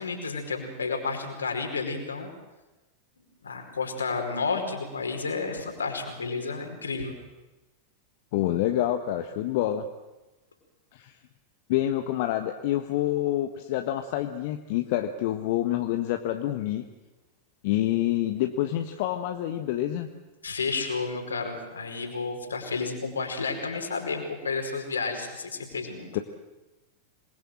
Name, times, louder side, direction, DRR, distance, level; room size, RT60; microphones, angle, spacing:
voice 1, 0.0-2.3 3.4-7.1 20.4-26.2, left 4 dB, 75° left, 3 dB, 4.9 m, -31 dB
voice 2, 8.3-9.9 10.9-11.1 11.7-16.8 17.6-20.1 26.1-26.2, left 13 dB, 50° left, 6 dB, 1.4 m, -27 dB
27.0 x 21.5 x 7.7 m, 1.1 s
figure-of-eight pair, 90°, 0 cm